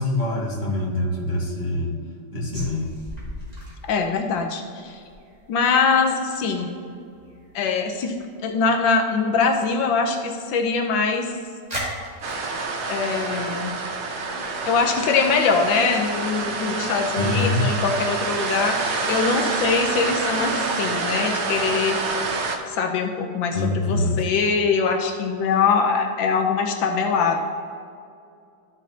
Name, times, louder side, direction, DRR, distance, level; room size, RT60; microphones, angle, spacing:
voice 1, 0.0-1.9 2.3-2.9 17.2-17.7 23.5-24.2, left 2 dB, 25° left, -4 dB, 1.5 m, -24 dB
sound 1, 2.5-9.1 9.4-9.6 9.9-11.3 11.7-12.5, equal, 20° right, 2.2 m, -38 dB
voice 2, 3.8-5.0 5.5-6.8 7.5-8.1 8.4-11.3 12.9-13.7 14.7-22.0 22.7-27.4, left 5 dB, 80° left, 4 dB, 1.4 m, -22 dB
sound 2, 12.2-22.6, right 3 dB, 55° right, 0.8 m, -27 dB
13.0 x 6.3 x 2.7 m, 2.4 s
omnidirectional pair, 2.1 m